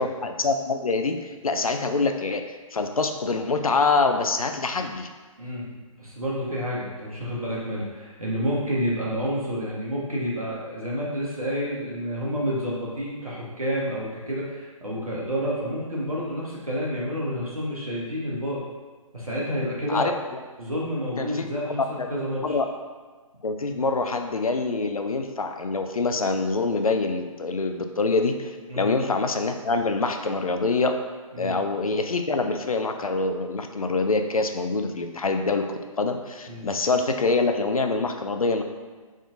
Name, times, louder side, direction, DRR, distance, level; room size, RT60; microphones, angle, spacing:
voice 1, 0.0-2.4 2.7-5.1 19.9-20.1 21.2-21.5 22.0-22.1 22.4-22.7 23.4-30.9 31.4-38.6, left 3 dB, 80° left, 6 dB, 0.5 m, -25 dB
voice 2, 5.4-18.6 19.1-20.1 20.6-21.8 22.1-22.6 28.7-28.9 31.3-31.5 36.5-36.7, equal, 85° right, -5 dB, 1.3 m, -29 dB
4.1 x 3.6 x 2.6 m, 1.4 s
figure-of-eight pair, 135°, 18 cm